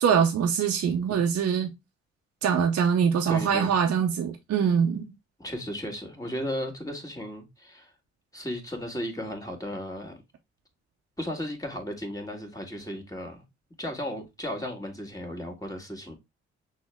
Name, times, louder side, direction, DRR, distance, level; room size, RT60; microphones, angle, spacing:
voice 1, 0.0-1.7 2.4-5.1, right 7 dB, 50° right, 0.7 m, -23 dB
voice 2, 3.3-3.7 5.4-7.9 8.3-10.2 11.2-13.4 13.8-16.1, equal, 10° left, 1.7 m, -35 dB
6.1 x 2.1 x 3.3 m
hypercardioid pair, 40°, 31 cm